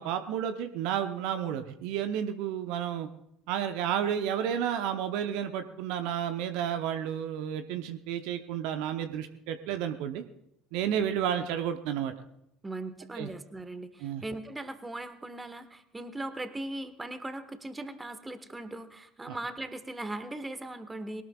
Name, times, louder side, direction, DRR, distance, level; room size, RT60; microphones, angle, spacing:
voice 1, 0.0-3.1 3.5-10.2 10.7-12.1 13.2-13.3 14.0-14.2 19.3-19.4, right 9 dB, 60° right, 8 dB, 1.0 m, -31 dB
voice 2, 12.6-21.2, right 2 dB, 15° right, 10 dB, 1.6 m, -39 dB
22.0 x 18.5 x 2.4 m, 0.78 s
figure-of-eight pair, 65°, 0 cm